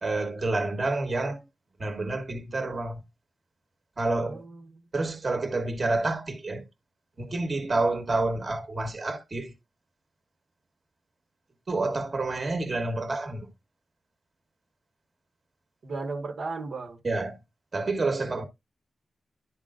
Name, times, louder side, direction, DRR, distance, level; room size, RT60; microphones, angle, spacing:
voice 1, 0.0-1.4 1.8-3.0 4.0-4.4 4.9-6.6 7.2-9.5 11.7-13.5 17.0-17.4 17.7-18.4, right 2 dB, 35° right, 1.4 m, -28 dB
voice 2, 4.2-4.8 15.8-17.0, right 3 dB, 65° right, 1.3 m, -35 dB
10.5 x 5.3 x 2.5 m
wide cardioid pair, 120°, 0 cm